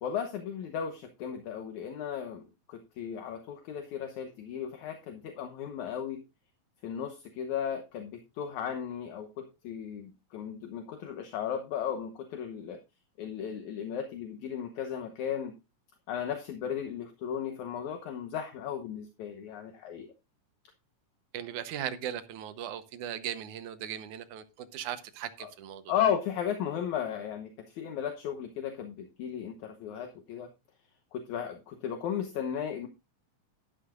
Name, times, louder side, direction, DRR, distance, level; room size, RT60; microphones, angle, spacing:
voice 1, 0.0-6.2 6.8-12.8 13.2-15.5 16.1-20.1 25.4-25.5 25.9-30.5 31.1-32.9, left 8 dB, 70° left, 2.3 m, -35 dB
voice 2, 21.3-25.9, right 10 dB, 70° right, 2.2 m, -38 dB
11.5 x 11.5 x 2.4 m
omnidirectional pair, 3.8 m